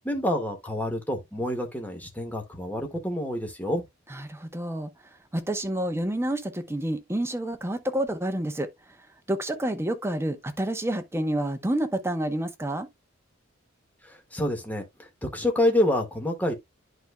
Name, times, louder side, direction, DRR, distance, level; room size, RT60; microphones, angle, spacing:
voice 1, 0.0-3.8 14.0-16.5, left 1 dB, 10° left, 1.7 m, -27 dB
voice 2, 4.1-4.9 5.3-8.7 9.3-12.9, right 1 dB, 15° right, 0.9 m, -29 dB
11.0 x 4.5 x 2.3 m
head